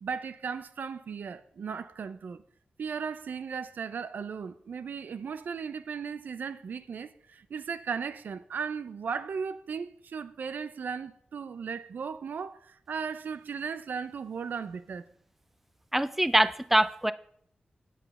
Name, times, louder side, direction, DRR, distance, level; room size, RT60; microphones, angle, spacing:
voice 1, 0.0-2.4 2.8-15.1, right 6 dB, 80° right, 0.5 m, -36 dB
voice 2, 15.9-17.1, right 1 dB, 5° right, 0.4 m, -24 dB
8.6 x 7.8 x 5.4 m
wide cardioid pair, 105°, 3 cm